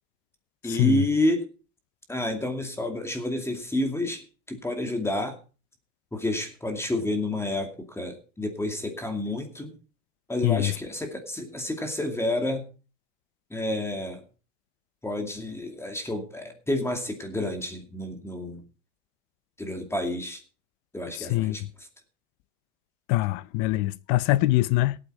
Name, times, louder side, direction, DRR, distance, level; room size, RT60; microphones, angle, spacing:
voice 1, 0.6-1.5 2.1-5.4 6.1-9.8 10.3-12.7 13.5-14.2 15.0-18.6 19.6-20.4 20.9-21.9, left 1 dB, 5° left, 2.5 m, -29 dB
voice 2, 10.4-10.7 21.2-21.6 23.1-25.0, left 18 dB, 55° left, 0.6 m, -23 dB
17.5 x 8.7 x 4.6 m
supercardioid pair, 125°, 36 cm